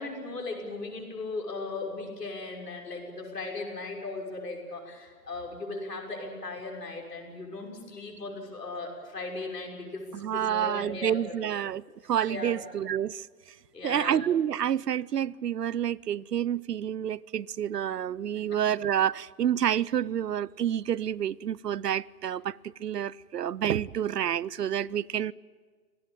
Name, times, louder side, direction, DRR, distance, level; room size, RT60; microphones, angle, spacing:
voice 1, 0.0-10.1 10.3-11.5 12.3-12.6 13.7-14.2 18.3-18.4, left 3 dB, 80° left, 6.1 m, -37 dB
voice 2, 10.1-13.3 13.8-25.3, right 10 dB, 80° right, 0.7 m, -29 dB
25.5 x 18.0 x 9.0 m
figure-of-eight pair, 110°, 47 cm